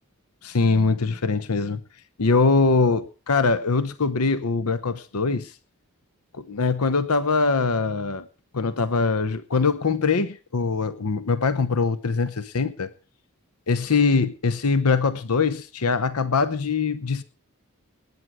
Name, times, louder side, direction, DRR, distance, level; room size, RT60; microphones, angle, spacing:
voice 1, 0.4-1.8 2.2-5.5 6.4-8.2 8.5-12.9 13.7-17.2, left 4 dB, 85° left, 14 dB, 0.9 m, -22 dB
19.0 x 9.5 x 4.7 m, 0.36 s
head